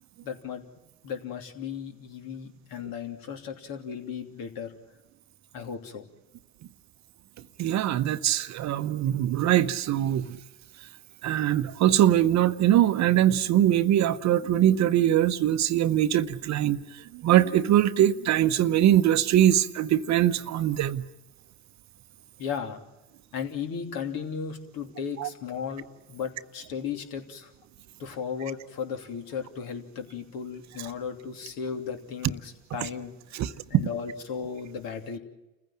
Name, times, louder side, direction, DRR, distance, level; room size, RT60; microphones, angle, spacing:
voice 1, 0.2-0.7 1.0-4.7 5.5-6.0 22.4-22.8 23.3-27.5 28.0-33.1 33.7-35.2, left 7 dB, 60° left, 3.1 m, -35 dB
voice 2, 7.6-10.4 11.2-21.1 25.2-25.3 33.3-33.5, right 12 dB, 45° right, 0.9 m, -22 dB
29.0 x 15.5 x 8.9 m
hypercardioid pair, 75°, 39 cm